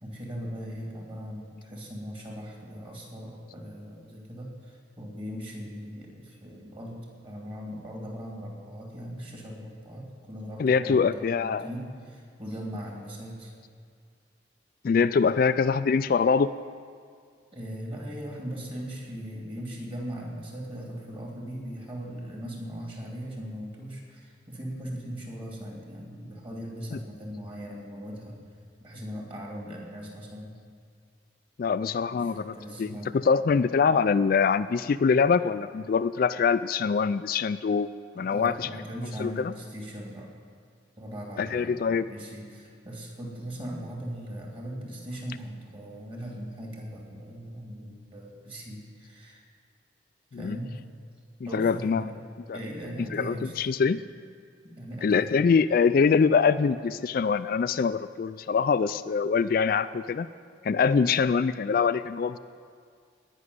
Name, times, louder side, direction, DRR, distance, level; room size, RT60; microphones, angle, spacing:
voice 1, 0.0-13.5 17.5-28.4 28.8-30.5 32.1-33.2 38.2-40.3 41.0-49.4 50.3-50.8 51.5-52.1 52.5-53.5 54.6-55.3, equal, 30° right, -1 dB, 2.7 m, -39 dB
voice 2, 10.6-11.7 14.8-16.5 31.6-38.7 39.2-39.5 41.4-42.1 50.3-50.6 51.4-52.1 52.5-52.6 53.1-54.0 55.0-60.3 60.6-62.4, left 5 dB, 50° left, 12 dB, 0.3 m, -24 dB
18.0 x 6.3 x 9.6 m, 2.1 s
head